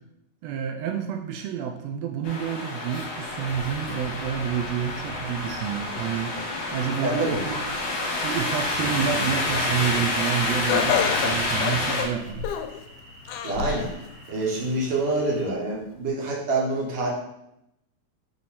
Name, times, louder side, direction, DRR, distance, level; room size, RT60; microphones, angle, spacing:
voice 1, 0.4-7.8 8.2-12.5, right 9 dB, 85° right, 3 dB, 1.5 m, -29 dB
sound 1, 2.2-12.0, left 2 dB, 60° left, 2.1 m, -28 dB
voice 2, 7.0-7.4 13.4-13.9 14.3-17.1, right 2 dB, 55° right, -3 dB, 2.0 m, -26 dB
sound 2, 9.1-15.5, equal, 35° right, 1.4 m, -48 dB
Laughter, 10.7-12.8 13.3-13.9 14.4-14.5 15.5-15.6, left 8 dB, 85° left, 2.1 m, -27 dB
6.9 x 3.2 x 4.2 m, 0.81 s
omnidirectional pair, 3.6 m